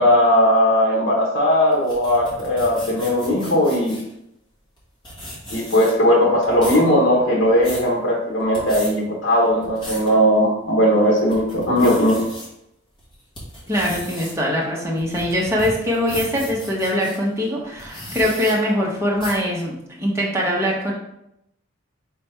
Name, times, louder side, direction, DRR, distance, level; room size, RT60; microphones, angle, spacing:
voice 1, 0.0-3.9 5.5-12.2, equal, 75° left, -2 dB, 1.2 m, -18 dB
sound 1, 1.7-4.1 4.8-4.9 5.0-6.1 6.4-6.9 7.3-7.9 8.4-8.9 9.4-10.1 10.6-10.7 11.2-12.5 13.0-17.2 17.7-18.5 19.2-19.5, left 1 dB, 20° left, 1.4 m, -36 dB
voice 2, 13.7-20.9, equal, 15° right, -4 dB, 0.9 m, -22 dB
4.4 x 3.3 x 3.3 m, 0.80 s
head